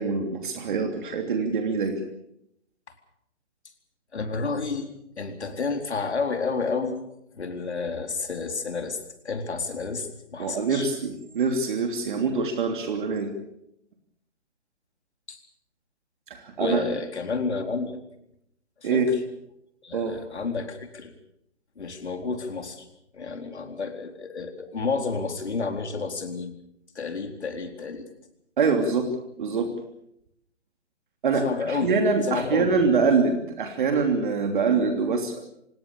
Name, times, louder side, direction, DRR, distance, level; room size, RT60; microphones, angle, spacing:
voice 1, 0.0-2.0 10.4-13.3 16.3-16.8 18.8-19.1 19.9-20.1 28.6-29.1 29.4-29.7 31.2-35.3, right 4 dB, 45° right, 4 dB, 3.1 m, -24 dB
voice 2, 4.1-4.9 5.2-7.0 7.3-9.0 9.2-10.9 15.3-15.4 16.6-18.0 18.8-19.2 19.8-21.1 21.8-22.9 23.1-26.5 26.9-28.1 31.4-31.9 32.3-33.0, left 4 dB, 65° left, 6 dB, 4.1 m, -30 dB
26.0 x 20.0 x 7.0 m, 0.77 s
figure-of-eight pair, 140°, 36 cm